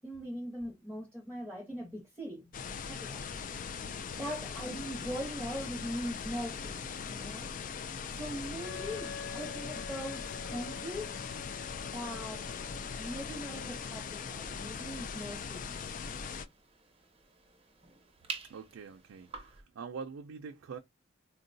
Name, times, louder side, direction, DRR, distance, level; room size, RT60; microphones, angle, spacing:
voice 1, 0.0-3.2 4.1-7.5 8.1-11.1 11.9-12.4 13.0-15.8, equal, 5° left, 0.9 m, -41 dB
sound 1, 2.5-16.4, left 6 dB, 40° left, 0.3 m, -40 dB
Wind instrument woodwind instrument, 8.6-14.2, left 5 dB, 80° left, 0.8 m, -48 dB
sound 2, 14.2-19.6, right 5 dB, 30° right, 0.7 m, -49 dB
voice 2, 18.4-20.8, right 5 dB, 85° right, 0.4 m, -44 dB
3.8 x 2.2 x 2.6 m
head